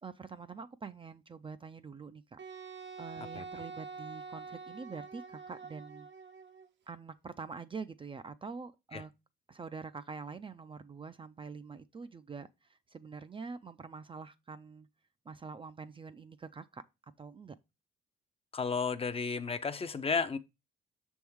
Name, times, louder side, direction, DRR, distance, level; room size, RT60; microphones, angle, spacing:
voice 1, 0.0-2.4 3.0-6.1 6.9-9.1 9.5-14.9 15.3-17.6, right 5 dB, 25° right, 0.4 m, -45 dB
Wind instrument woodwind instrument, 2.4-6.7, right 5 dB, 65° right, 0.8 m, -46 dB
voice 2, 18.5-20.4, left 5 dB, 30° left, 0.5 m, -33 dB
6.2 x 3.6 x 4.5 m
cardioid pair, 90°, 20 cm